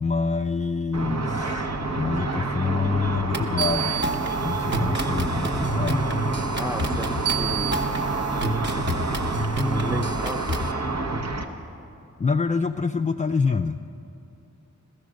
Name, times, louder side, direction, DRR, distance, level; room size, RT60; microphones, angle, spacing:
voice 1, 0.0-4.0 4.4-6.1 12.2-13.8, left 4 dB, 25° left, 6 dB, 0.3 m, -26 dB
Car / Traffic noise roadway noise / Engine, 0.9-11.4, right 3 dB, 60° right, 1.1 m, -28 dB
sound 1, 3.3-10.7, right 2 dB, 40° right, 1.2 m, -28 dB
voice 2, 6.5-7.9 9.6-10.5, equal, 10° right, 7 dB, 0.7 m, -34 dB
15.0 x 14.5 x 6.3 m, 2.7 s
wide cardioid pair, 90°, 30 cm